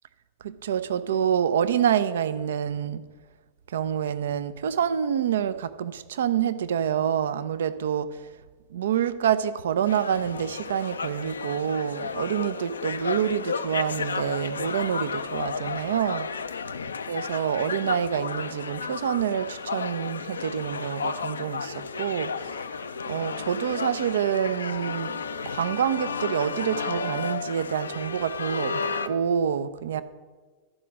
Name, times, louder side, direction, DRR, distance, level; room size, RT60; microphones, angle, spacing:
voice 1, 0.4-3.0 3.7-8.2 8.7-16.3 17.1-22.6 23.1-25.2 25.4-30.0, right 9 dB, 60° right, 14 dB, 0.4 m, -27 dB
sound 1, 9.9-29.1, left 5 dB, 70° left, 0.4 m, -33 dB
12.5 x 4.9 x 6.1 m, 1.4 s
figure-of-eight pair, 90°, 0 cm